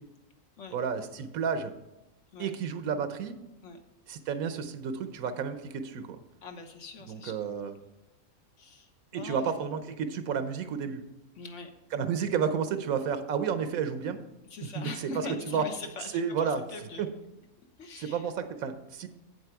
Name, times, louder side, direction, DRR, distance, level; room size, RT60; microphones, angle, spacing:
voice 1, 0.7-1.7 2.4-3.3 4.1-6.2 7.1-7.7 9.1-11.0 11.9-14.2 14.7-15.1 15.5-15.6 16.1-16.6 17.0-17.1 18.0-19.1, right 6 dB, 80° right, 9 dB, 1.2 m, -31 dB
voice 2, 6.4-7.7 8.6-9.5 11.4-11.7 14.5-17.0 17.8-18.3, left 3 dB, 60° left, 4 dB, 1.4 m, -42 dB
8.2 x 7.8 x 4.6 m, 0.93 s
omnidirectional pair, 1.5 m